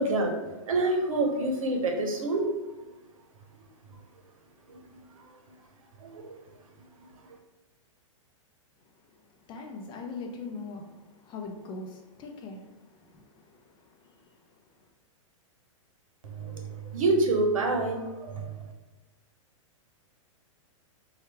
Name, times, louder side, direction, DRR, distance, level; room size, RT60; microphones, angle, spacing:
voice 1, 0.0-2.8 4.7-5.2 6.0-6.5 7.0-7.1 16.2-18.6, right 2 dB, 85° right, 3 dB, 0.8 m, -28 dB
voice 2, 8.8-14.9, left 3 dB, 30° left, 2 dB, 0.6 m, -43 dB
4.4 x 2.4 x 3.3 m, 1.1 s
hypercardioid pair, 120°, 17 cm